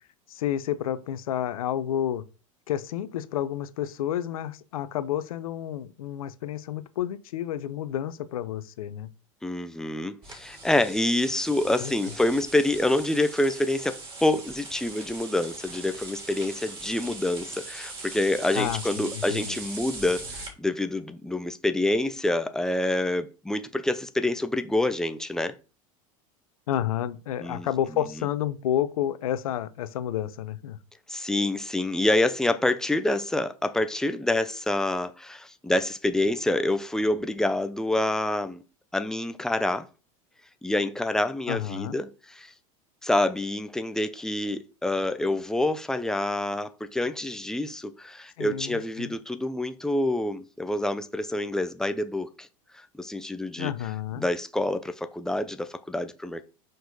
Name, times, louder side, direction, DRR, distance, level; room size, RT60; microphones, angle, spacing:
voice 1, 0.3-2.2 2.7-9.1 11.8-11.9 18.5-19.6 26.7-30.8 41.5-41.9 48.4-49.1 53.6-54.2, left 11 dB, 80° left, 0.7 m, -30 dB
voice 2, 9.4-25.5 27.4-27.7 31.1-38.6 38.9-39.9 40.6-42.5 43.0-52.5 52.7-53.7 54.1-56.4, left 1 dB, 5° left, 0.7 m, -27 dB
sound 1, 10.2-20.5, right 3 dB, 30° right, 3.5 m, -40 dB
6.3 x 4.7 x 4.0 m
hypercardioid pair, 95°, 18 cm